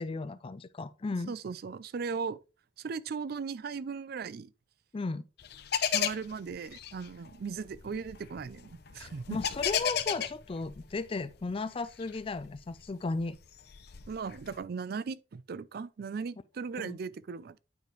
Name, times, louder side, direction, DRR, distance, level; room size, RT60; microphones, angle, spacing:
voice 1, 0.0-1.4 4.9-5.2 9.0-13.4 16.8-17.0, left 3 dB, 30° left, 0.4 m, -35 dB
voice 2, 1.3-2.4 2.8-4.5 5.9-9.4 14.1-17.6, right 5 dB, 55° right, 0.4 m, -37 dB
sound 1, 5.4-11.4 11.9-14.6, left 8 dB, 60° left, 0.7 m, -34 dB
9.2 x 4.9 x 3.1 m
head